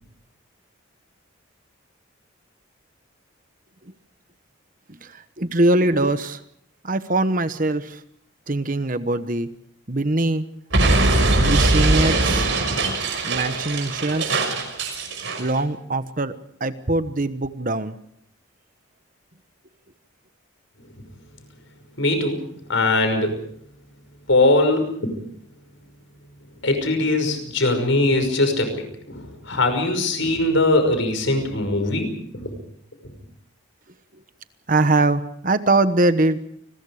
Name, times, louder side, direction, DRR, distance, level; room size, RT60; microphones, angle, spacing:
voice 1, 5.0-6.4 6.8-8.0 8.5-9.5 9.9-10.5 11.4-12.5 13.2-14.5 15.4-16.3 16.6-18.0 34.7-36.4, right 2 dB, 40° right, 11 dB, 1.1 m, -22 dB
Explosion, 10.7-15.5, right 2 dB, 65° right, 5.9 m, -21 dB
voice 2, 22.0-23.3 24.3-25.1 26.6-32.5, left 2 dB, 70° left, 7 dB, 5.8 m, -21 dB
29.5 x 21.0 x 5.0 m, 0.68 s
head